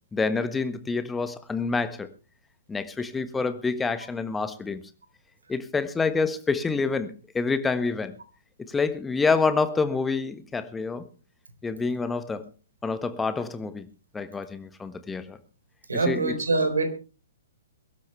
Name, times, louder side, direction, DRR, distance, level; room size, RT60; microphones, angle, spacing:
voice 1, 0.1-2.1 2.7-4.8 5.5-8.2 8.7-11.1 11.6-12.5 12.8-13.9 14.1-15.4 15.9-16.3, left 4 dB, 10° left, 1.5 m, -27 dB
voice 2, 15.9-16.9, right 3 dB, 75° right, 4.1 m, -24 dB
22.5 x 12.5 x 3.3 m
figure-of-eight pair, 120°, 0 cm